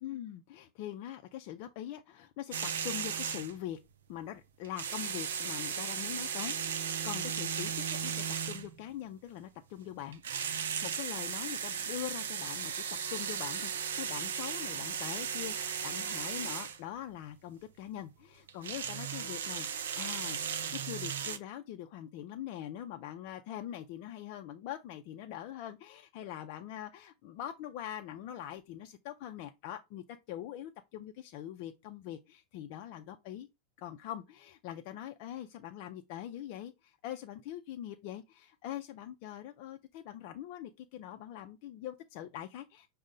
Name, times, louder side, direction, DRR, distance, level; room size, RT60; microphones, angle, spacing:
voice 1, 0.0-3.8 4.1-10.2 10.5-12.7 13.1-33.5 33.8-42.9, left 11 dB, 55° left, 0.3 m, -43 dB
sound 1, 2.5-3.6 4.6-8.8 10.1-16.8 18.5-21.4, right 7 dB, 80° right, 0.4 m, -36 dB
5.2 x 2.0 x 3.7 m
hypercardioid pair, 100°, 0 cm